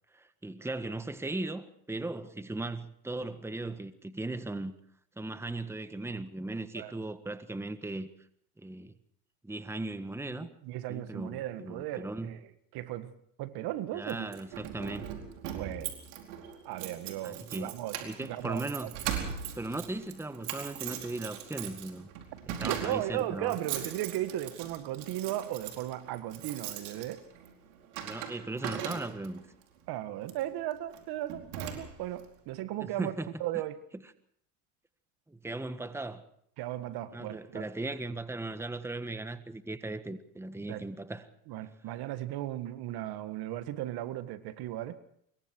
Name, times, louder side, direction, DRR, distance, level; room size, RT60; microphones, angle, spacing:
voice 1, 0.1-4.7 5.2-8.1 8.6-8.9 9.4-10.5 10.9-12.3 13.9-15.1 17.2-17.7 18.0-18.9 19.5-22.1 22.5-23.5 28.0-29.4 32.8-33.3 35.3-36.2 37.1-41.3, right 2 dB, 5° right, 1.5 m, -37 dB
voice 2, 10.4-12.4 12.7-13.1 13.4-14.3 15.6-15.9 16.7-18.9 22.6-27.2 29.9-33.8 36.6-37.7 40.7-40.8 41.5-45.0, right 14 dB, 60° right, 1.8 m, -36 dB
Keys jangling, 14.1-29.4 30.2-30.5 30.9-31.0 31.3-32.2, right 9 dB, 80° right, 4.5 m, -40 dB
25.0 x 22.5 x 4.7 m
supercardioid pair, 95°, 42 cm